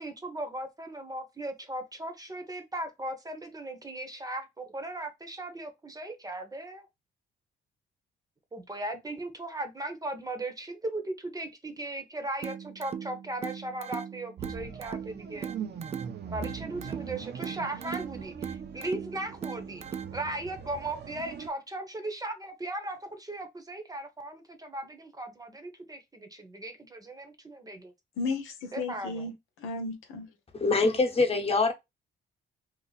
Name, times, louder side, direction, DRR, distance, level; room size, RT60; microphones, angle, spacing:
voice 1, 0.0-6.9 8.5-15.5 16.3-19.8 20.1-27.9 28.7-29.3, right 2 dB, 20° right, 0.9 m, -37 dB
sound 1, 12.4-20.4, right 8 dB, 35° right, 0.3 m, -40 dB
sound 2, 14.4-21.5, right 7 dB, 55° right, 0.7 m, -42 dB
voice 2, 28.2-30.3, left 3 dB, 90° left, 0.9 m, -34 dB
voice 3, 30.5-31.7, left 3 dB, 30° left, 1.0 m, -24 dB
2.7 x 2.4 x 4.0 m
cardioid pair, 90°, 20 cm